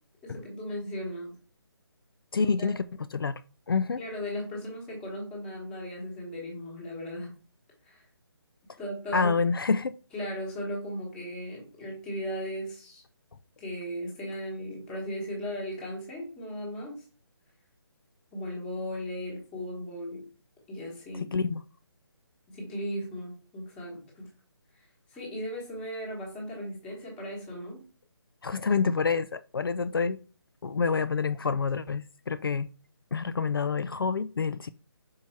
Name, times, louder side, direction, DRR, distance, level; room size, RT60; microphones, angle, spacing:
voice 1, 0.2-1.3 2.3-2.8 4.0-7.3 7.8-8.1 8.8-9.3 10.1-13.0 13.6-17.0 18.3-20.3 20.7-21.3 22.5-24.3 24.7-27.8, equal, 5° left, 1.2 m, -37 dB
voice 2, 2.3-2.8 3.1-3.4 3.7-4.0 9.1-10.0 21.3-21.6 28.4-30.2 30.6-32.7 33.1-34.7, left 5 dB, 55° left, 0.4 m, -27 dB
5.8 x 4.6 x 4.3 m
hypercardioid pair, 175°, 14 cm